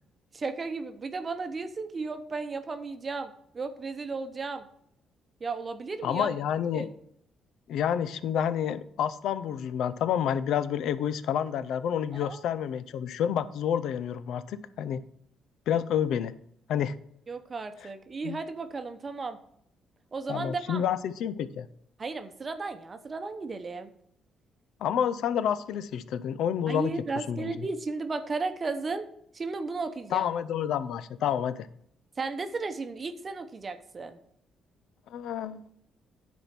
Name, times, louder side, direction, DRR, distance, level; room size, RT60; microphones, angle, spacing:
voice 1, 0.3-4.7 5.4-6.3 6.7-6.9 12.1-12.4 17.3-19.4 20.1-20.8 22.0-23.9 26.7-29.1 29.3-30.3 32.2-34.2, right 4 dB, 35° right, 8 dB, 0.8 m, -34 dB
voice 2, 6.0-6.9 7.7-15.0 15.7-16.3 16.7-17.0 18.2-18.4 20.3-21.7 24.8-27.6 30.1-31.7 35.1-35.7, left 9 dB, 80° left, 15 dB, 0.5 m, -29 dB
10.0 x 4.4 x 5.9 m, 0.71 s
cardioid pair, 90°, 0 cm